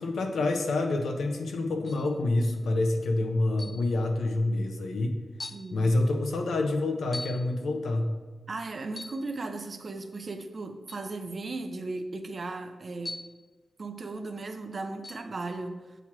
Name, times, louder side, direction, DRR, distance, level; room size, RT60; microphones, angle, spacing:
voice 1, 0.0-5.1 5.7-8.1, left 2 dB, 85° left, 4 dB, 0.8 m, -27 dB
sound 1, 1.8-2.2 3.6-3.9 4.7-4.8 5.4-5.7 7.1-7.5 8.9-9.3 10.9-11.1 13.0-13.4 15.0-15.3, left 2 dB, 30° left, 0.3 m, -41 dB
voice 2, 5.5-5.9 8.5-13.2 13.8-15.9, right 3 dB, 35° right, 6 dB, 0.5 m, -36 dB
8.0 x 2.9 x 5.9 m, 1.3 s
wide cardioid pair, 170°, 0 cm